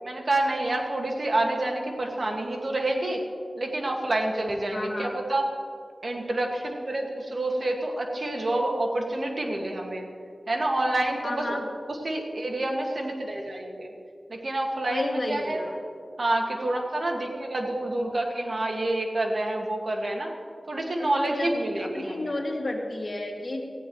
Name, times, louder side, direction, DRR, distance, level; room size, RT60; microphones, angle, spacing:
voice 1, 0.0-3.2 3.6-5.5 6.0-10.1 10.5-11.6 11.9-13.9 14.3-15.6 16.2-20.3 20.7-22.4, right 1 dB, 60° right, 1 dB, 2.0 m, -28 dB
voice 2, 4.7-5.1 11.2-11.6 14.9-15.8 21.0-23.6, left 1 dB, 50° left, -1 dB, 2.4 m, -32 dB
18.0 x 15.0 x 3.2 m, 2.3 s
wide cardioid pair, 50°, 0 cm